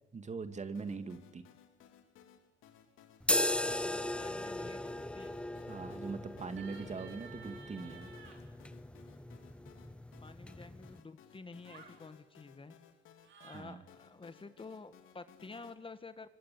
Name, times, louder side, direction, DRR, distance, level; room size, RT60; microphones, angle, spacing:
voice 1, 0.1-1.5 5.6-8.1 13.5-13.8, right 4 dB, 35° right, 9 dB, 2.5 m, -42 dB
sound 1, 0.7-15.7, left 9 dB, 85° left, 3.0 m, -61 dB
sound 2, 3.2-11.0, left 1 dB, 5° left, 0.9 m, -38 dB
voice 2, 3.8-5.4 10.2-12.7 13.4-16.3, left 4 dB, 25° left, 11 dB, 1.9 m, -50 dB
sound 3, 6.4-8.4 11.6-12.0 13.2-13.7, right 7 dB, 75° right, 6.2 m, -54 dB
26.5 x 25.5 x 8.7 m, 1.0 s
cardioid pair, 90°, 20 cm